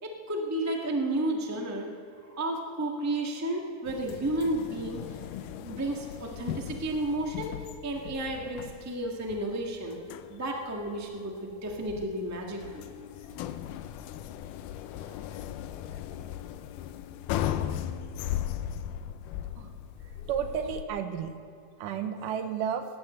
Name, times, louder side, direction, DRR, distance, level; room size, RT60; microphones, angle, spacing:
voice 1, 0.0-1.9 2.2-7.5 7.8-10.0 10.3-12.9 13.3-13.4 15.0-15.1, right 1 dB, 20° right, 0 dB, 0.4 m, -32 dB
sound 1, 3.9-20.8, left 11 dB, 85° left, 2.2 m, -37 dB
voice 2, 20.3-21.3 21.8-22.9, right 8 dB, 85° right, 8 dB, 2.5 m, -32 dB
18.0 x 9.5 x 7.9 m, 2.3 s
omnidirectional pair, 3.7 m